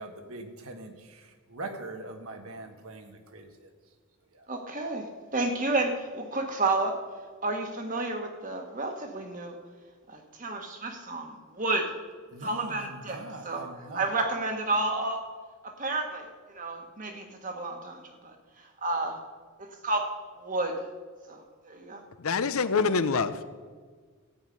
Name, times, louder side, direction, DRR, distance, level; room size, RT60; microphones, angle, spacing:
voice 1, 0.0-3.7 4.3-4.5 5.3-5.4 12.3-14.1, right 2 dB, 75° right, 5 dB, 1.4 m, -42 dB
voice 2, 4.5-5.1 5.3-7.0 7.4-9.6 10.1-11.9 12.4-13.2 13.4-13.7 13.9-15.2 15.8-16.3 16.5-18.3 18.8-19.2 19.6-20.1 20.4-20.8 21.3-22.0, right 2 dB, 35° right, 4 dB, 1.3 m, -30 dB
voice 3, 22.2-23.4, left 5 dB, 75° left, 13 dB, 0.7 m, -26 dB
14.0 x 9.2 x 5.3 m, 1.5 s
head